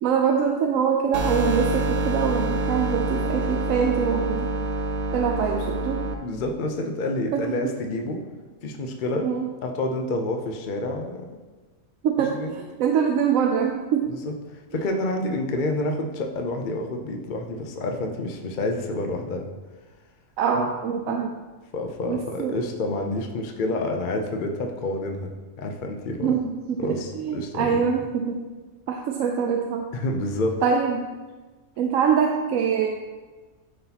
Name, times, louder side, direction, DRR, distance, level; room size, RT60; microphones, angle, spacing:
voice 1, 0.0-4.5 5.1-6.0 7.3-7.4 9.2-9.5 12.0-14.1 20.4-21.3 22.1-22.6 26.2-28.4 28.9-29.8 30.6-31.0 31.8-32.9, right 7 dB, 90° right, 1 dB, 1.0 m, -24 dB
sound 1, 1.1-6.1, right 2 dB, 55° right, 0.7 m, -26 dB
voice 2, 6.2-8.2 8.6-9.3 9.6-11.3 12.2-12.5 14.2-19.5 21.7-26.3 26.8-27.8 29.9-30.6, left 2 dB, 50° left, 3 dB, 0.6 m, -28 dB
11.0 x 4.0 x 2.8 m, 1.3 s
omnidirectional pair, 1.4 m